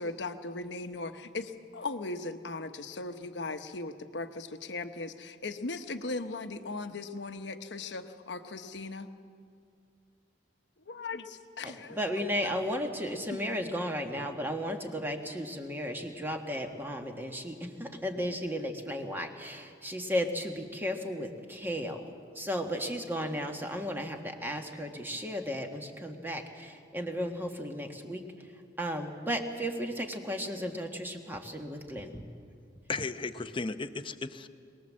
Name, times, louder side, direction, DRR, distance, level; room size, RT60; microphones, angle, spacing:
voice 1, 0.0-9.1 10.9-12.0 13.3-13.4, left 3 dB, 75° left, 8 dB, 1.1 m, -38 dB
voice 2, 11.6-28.5 28.8-32.3, equal, 10° right, 4 dB, 1.6 m, -35 dB
voice 3, 32.9-34.5, left 3 dB, 30° left, 10 dB, 0.7 m, -35 dB
22.5 x 20.0 x 7.5 m, 2.3 s
head